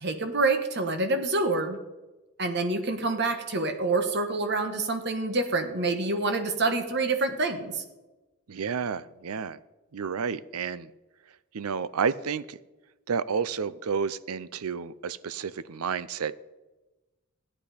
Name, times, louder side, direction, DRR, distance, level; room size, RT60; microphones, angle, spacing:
voice 1, 0.0-1.8 2.4-7.8, right 3 dB, 50° right, 7 dB, 1.4 m, -27 dB
voice 2, 8.5-9.6 9.9-10.9 11.5-12.6 13.1-16.3, right 6 dB, 80° right, 17 dB, 0.6 m, -30 dB
14.0 x 9.8 x 5.1 m, 1.1 s
head